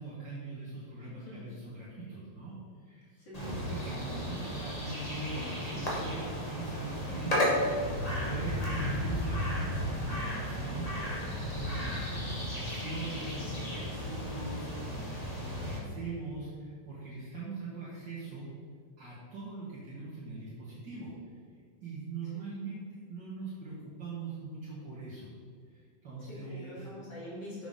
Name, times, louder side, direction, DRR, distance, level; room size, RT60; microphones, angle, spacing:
voice 1, 0.0-3.2 3.7-18.5 19.0-21.4 21.8-25.3 25.6-26.9, right 3 dB, 60° right, -9 dB, 2.7 m, -42 dB
voice 2, 1.0-1.5 3.2-3.6 8.1-8.4 10.9-11.2 22.3-22.5 26.3-27.7, left 1 dB, 60° left, -6 dB, 3.1 m, -46 dB
sound 1, 3.3-15.8, equal, 20° left, 2.0 m, -34 dB
7.5 x 7.2 x 5.6 m, 2.1 s
omnidirectional pair, 2.2 m